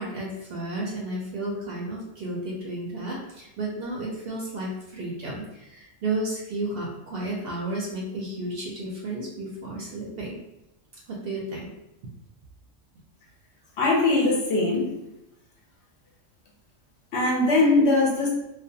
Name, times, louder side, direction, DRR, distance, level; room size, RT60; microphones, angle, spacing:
voice 1, 0.0-10.4 11.1-11.7, right 2 dB, 65° right, -3 dB, 0.6 m, -32 dB
voice 2, 13.8-15.0 17.1-18.3, left 2 dB, 65° left, -2 dB, 0.8 m, -21 dB
2.4 x 2.1 x 2.6 m, 0.90 s
omnidirectional pair, 1.3 m